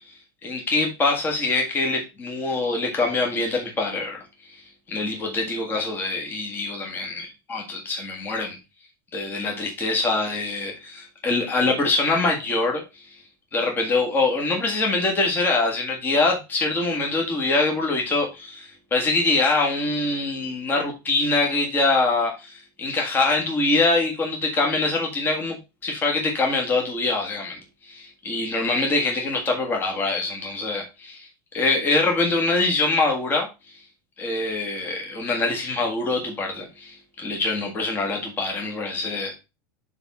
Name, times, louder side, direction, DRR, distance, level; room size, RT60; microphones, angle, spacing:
voice 1, 0.4-4.2 4.5-4.6 4.9-8.6 9.1-12.8 13.5-25.6 25.8-31.3 31.5-33.5 34.2-39.4, left 3 dB, 15° left, 1.5 m, -24 dB
6.9 x 3.6 x 4.1 m
supercardioid pair, 155°, 12 cm